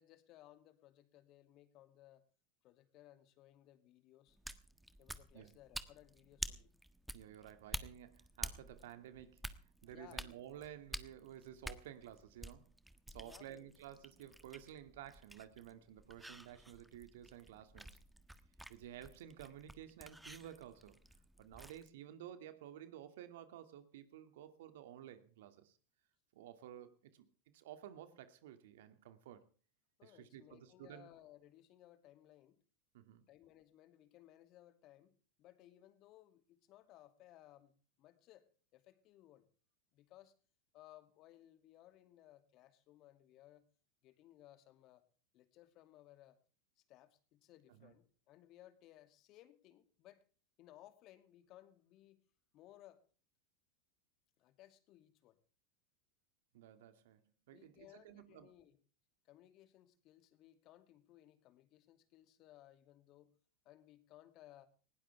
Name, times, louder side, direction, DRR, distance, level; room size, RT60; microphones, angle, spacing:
voice 1, 0.0-2.2 2.6-4.4 5.0-6.7 9.9-10.2 13.2-13.7 30.0-32.6 33.3-39.5 39.9-40.3 40.7-43.7 44.0-45.0 45.3-46.4 46.8-50.2 50.6-52.2 52.5-53.0 54.4-55.4 57.5-58.8 59.2-63.4 63.6-64.7, left 14 dB, 45° left, 2.5 m, -62 dB
sound 1, 4.3-21.9, right 1 dB, 5° right, 1.5 m, -50 dB
voice 2, 7.1-12.7 13.1-18.0 18.7-21.0 21.4-25.8 26.3-27.3 27.5-29.4 30.0-31.1 32.9-33.2 47.7-47.9 56.5-57.2 57.5-58.5, right 11 dB, 65° right, 2.3 m, -53 dB
20.0 x 18.0 x 3.5 m
hypercardioid pair, 90°, 0 cm